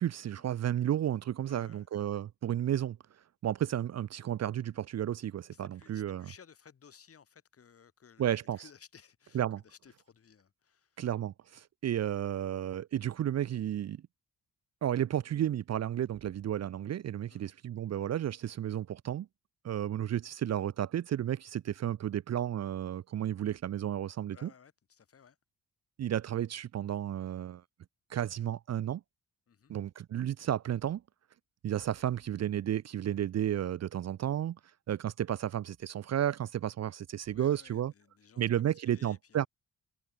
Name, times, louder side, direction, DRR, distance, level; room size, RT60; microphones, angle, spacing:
voice 1, 0.0-3.0 3.4-6.3 8.2-8.6 9.3-9.6 11.0-14.0 14.8-19.3 19.6-24.5 26.0-27.6 28.1-29.0 29.7-31.0 31.6-34.6 34.9-37.9 38.4-39.5, right 11 dB, 50° right, 0.7 m, -32 dB
voice 2, 1.5-1.9 5.5-11.1 17.3-17.5 24.3-25.4 29.5-29.7 37.3-39.5, left 7 dB, 40° left, 3.5 m, -58 dB
cardioid pair, 140°, 35 cm